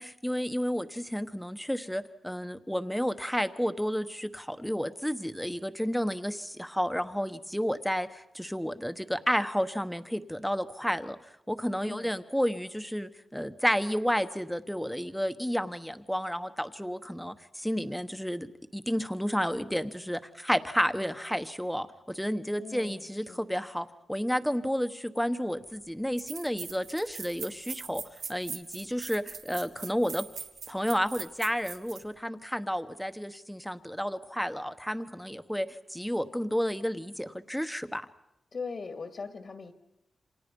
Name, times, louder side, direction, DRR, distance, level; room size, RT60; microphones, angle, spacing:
voice 1, 0.0-11.2 11.5-28.0 28.3-30.2 30.7-38.0, equal, ahead, 9 dB, 1.2 m, -31 dB
voice 2, 11.8-12.2 22.6-23.4 38.5-39.7, left 4 dB, 55° left, 6 dB, 2.2 m, -40 dB
sound 1, 25.6-25.7 26.2-32.0, right 6 dB, 80° right, 2.2 m, -41 dB
29.0 x 26.0 x 5.4 m, 0.89 s
cardioid pair, 95°, 0 cm